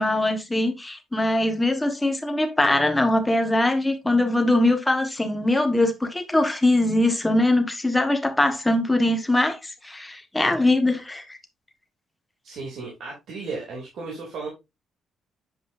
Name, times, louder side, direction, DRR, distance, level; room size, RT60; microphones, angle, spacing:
voice 1, 0.0-9.6 9.8-11.2, left 1 dB, 10° left, 1.4 m, -22 dB
voice 2, 12.4-14.5, right 4 dB, 70° right, 2.7 m, -34 dB
7.9 x 5.0 x 2.5 m
cardioid pair, 90°, 0 cm